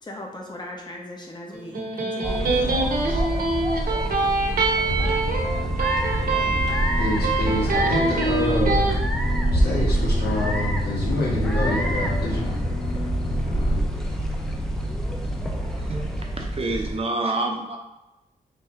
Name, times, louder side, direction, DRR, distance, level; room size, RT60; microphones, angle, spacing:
voice 1, 0.0-3.2, left 1 dB, 25° left, 0 dB, 0.8 m, -39 dB
Electric guitar, 1.5-8.9, right 3 dB, 65° right, 0.9 m, -25 dB
sound 1, 2.2-17.0, right 1 dB, 5° left, 0.5 m, -26 dB
sound 2, 4.9-13.8, left 1 dB, 60° left, 1.1 m, -30 dB
voice 2, 7.0-8.9 9.5-12.5, left 2 dB, 90° left, -5 dB, 1.4 m, -27 dB
voice 3, 15.6-16.1 16.4-17.8, right 2 dB, 35° right, 2 dB, 0.7 m, -28 dB
3.5 x 2.7 x 4.4 m, 0.96 s
wide cardioid pair, 105°, 16 cm